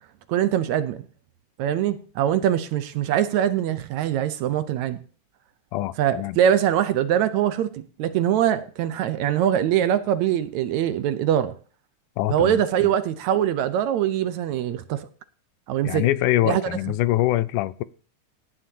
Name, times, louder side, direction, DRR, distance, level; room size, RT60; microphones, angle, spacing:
voice 1, 0.3-1.0 1.6-5.0 6.0-11.5 12.3-15.1 15.7-16.1 16.5-16.6, right 10 dB, 75° right, 1.9 m, -23 dB
voice 2, 5.7-6.4 12.2-12.6 15.8-17.8, left 15 dB, 80° left, 2.1 m, -24 dB
17.0 x 10.5 x 2.8 m
omnidirectional pair, 3.7 m